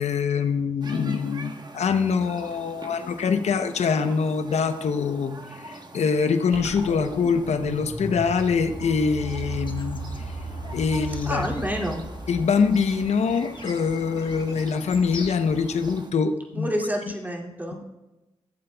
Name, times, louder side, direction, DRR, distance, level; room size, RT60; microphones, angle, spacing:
voice 1, 0.0-10.0 10.7-11.5 12.3-16.7, left 5 dB, 70° left, 9 dB, 0.8 m, -24 dB
sound 1, 0.8-16.1, right 2 dB, 35° right, 1.2 m, -44 dB
sound 2, 6.5-13.0, right 2 dB, 85° right, 2.5 m, -36 dB
sound 3, 9.4-16.0, left 3 dB, 45° left, 1.2 m, -44 dB
voice 2, 11.2-12.0 16.5-17.8, equal, 15° right, -1 dB, 2.6 m, -28 dB
17.0 x 7.5 x 2.3 m, 1.0 s
supercardioid pair, 45°, 12 cm